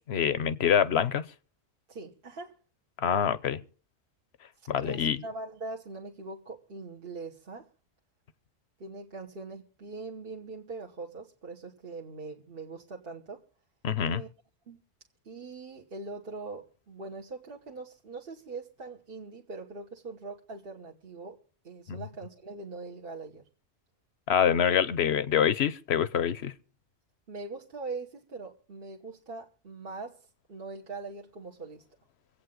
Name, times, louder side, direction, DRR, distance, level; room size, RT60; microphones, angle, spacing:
voice 1, 0.1-1.3 3.0-3.6 4.7-5.2 13.8-14.2 21.9-22.0 24.3-26.5, left 8 dB, 70° left, 1.0 m, -25 dB
voice 2, 1.9-2.6 4.6-7.7 8.8-13.4 14.0-14.3 14.7-14.8 15.2-21.4 21.6-23.5 27.3-30.2 30.5-31.8, right 3 dB, 55° right, 1.5 m, -42 dB
25.5 x 8.6 x 3.8 m
omnidirectional pair, 1.1 m